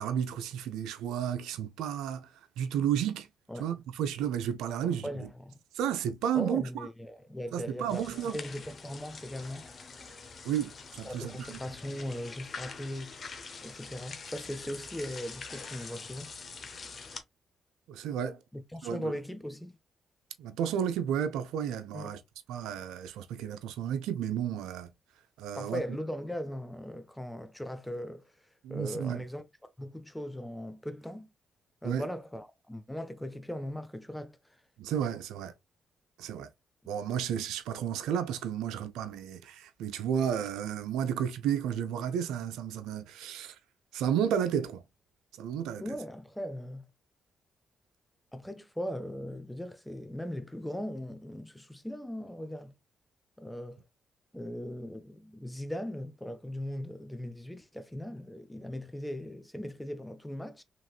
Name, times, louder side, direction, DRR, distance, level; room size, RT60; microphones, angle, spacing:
voice 1, 0.0-2.3 2.6-3.3 3.6-5.3 5.7-6.9 7.5-8.4 10.4-11.6 17.9-18.4 18.8-19.1 20.4-22.2 22.5-24.9 25.4-25.8 28.6-29.2 31.8-32.1 34.8-35.5 36.2-36.5 36.9-43.6 43.9-44.8 45.4-45.9, right 9 dB, 85° right, 0.4 m, -32 dB
voice 2, 4.8-5.6 6.3-9.7 11.0-13.2 13.6-16.3 18.5-19.8 21.9-22.1 25.6-28.3 28.7-29.4 29.8-31.3 31.8-34.6 45.8-46.9 48.3-52.7 53.4-53.8 54.3-60.6, equal, 10° left, 0.6 m, -39 dB
sound 1, 7.9-17.2, left 4 dB, 50° left, 0.7 m, -45 dB
2.9 x 2.9 x 2.3 m
supercardioid pair, 55°, 0 cm